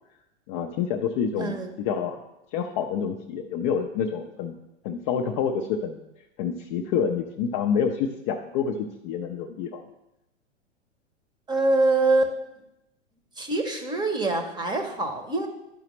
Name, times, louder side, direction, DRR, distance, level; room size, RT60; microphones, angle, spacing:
voice 1, 0.5-2.2 2.5-4.5 4.8-6.0 6.4-8.8 9.0-9.8, left 7 dB, 25° left, 3 dB, 0.5 m, -27 dB
voice 2, 1.4-1.7 11.5-12.3 13.4-15.5, right 2 dB, 10° right, 5 dB, 0.8 m, -24 dB
11.5 x 4.8 x 3.1 m, 0.87 s
figure-of-eight pair, 100°, 36 cm